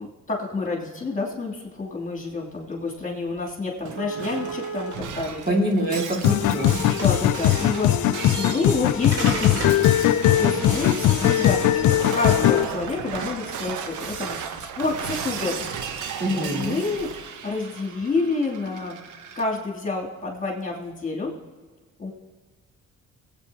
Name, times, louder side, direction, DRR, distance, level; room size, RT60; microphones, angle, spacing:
voice 1, 0.0-5.6 5.9-6.0 6.9-9.9 10.3-14.4 14.7-17.1 17.4-19.0 19.3-21.3 22.0-22.1, left 3 dB, 25° left, -2 dB, 2.9 m, -29 dB
sound 1, 2.9-3.0 3.3-3.4 4.0-4.9 5.8-6.6 7.0-7.4 8.5-8.6 9.1-9.9, right 3 dB, 55° right, 3.6 m, -32 dB
Shatter, 3.8-19.4, right 7 dB, 80° right, 1.0 m, -35 dB
voice 2, 5.5-6.8 16.2-16.8, equal, 30° right, -1 dB, 2.3 m, -24 dB
sound 2, 6.2-12.6, left 12 dB, 75° left, 0.5 m, -20 dB
20.0 x 8.7 x 2.9 m, 1.4 s
cardioid pair, 90°, 30 cm